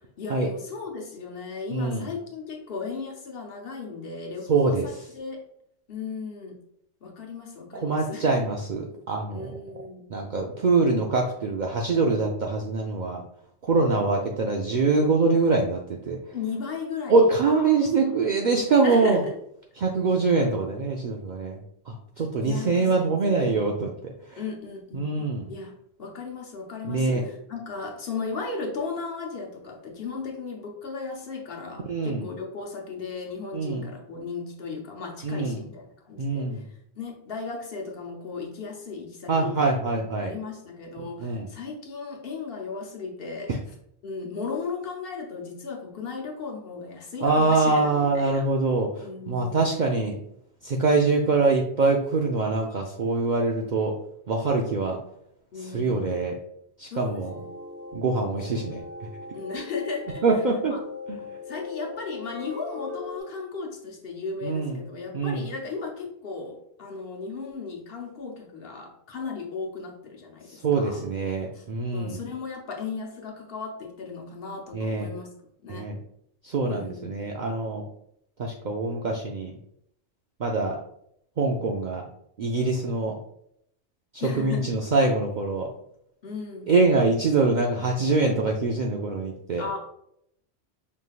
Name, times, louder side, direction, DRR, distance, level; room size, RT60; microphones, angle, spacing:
voice 1, 0.2-5.4 5.9-6.6 7.0-8.3 9.3-10.1 16.3-17.2 17.5-17.8 18.8-19.3 22.4-22.9 24.3-25.7 26.0-39.7 40.1-43.5 44.0-48.5 49.0-49.6 55.5-56.2 56.9-57.5 58.5-58.6 59.3-60.4 60.7-60.8 61.5-71.0 71.5-71.6 71.9-75.3 75.6-75.9 76.7-77.2 84.2-84.8 86.2-86.7 89.6-89.8, left 4 dB, 55° left, 0 dB, 0.9 m, -36 dB
voice 2, 1.7-2.1 4.5-4.9 7.8-9.6 10.1-13.2 13.6-15.8 16.1-16.2 17.1-19.2 19.8-21.6 21.9-24.4 24.9-25.5 26.8-27.2 31.9-32.3 33.5-33.9 35.2-35.6 36.2-36.6 39.3-40.3 41.2-41.5 43.5-43.6 47.2-50.2 50.6-53.9 54.3-55.0 55.6-56.3 56.8-57.3 57.9-58.8 60.2-60.7 61.1-61.2 64.4-64.8 65.1-65.5 70.6-72.2 74.7-75.1 75.7-76.0 76.4-77.8 78.4-79.5 80.4-80.8 81.4-82.1 82.4-83.1 84.1-85.7 86.7-89.7, right 3 dB, 60° right, 0 dB, 0.5 m, -24 dB
sound 1, 57.2-63.2, left 3 dB, 15° right, 0.6 m, -40 dB
5.3 x 3.2 x 2.4 m, 0.73 s
omnidirectional pair, 1.2 m